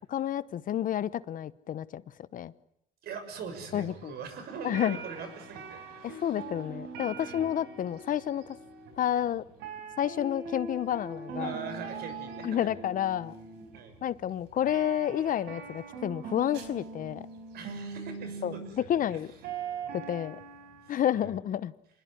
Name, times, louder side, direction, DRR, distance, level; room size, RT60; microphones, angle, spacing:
voice 1, 0.1-2.0 2.3-2.5 3.7-4.1 4.6-5.0 6.0-8.6 9.0-9.5 10.0-11.5 12.4-13.3 14.0-17.3 18.4-19.3 19.9-20.4 20.9-21.7, left 10 dB, 55° left, 1.0 m, -30 dB
voice 2, 3.0-6.4 7.2-7.5 11.4-12.7 13.7-13.9 17.5-18.8 19.1-19.2 19.8-19.9 20.9-21.3, right 6 dB, 70° right, 6.7 m, -42 dB
sound 1, 3.5-20.9, right 4 dB, 90° right, 4.8 m, -42 dB
26.5 x 21.0 x 9.8 m
cardioid pair, 110°, 17 cm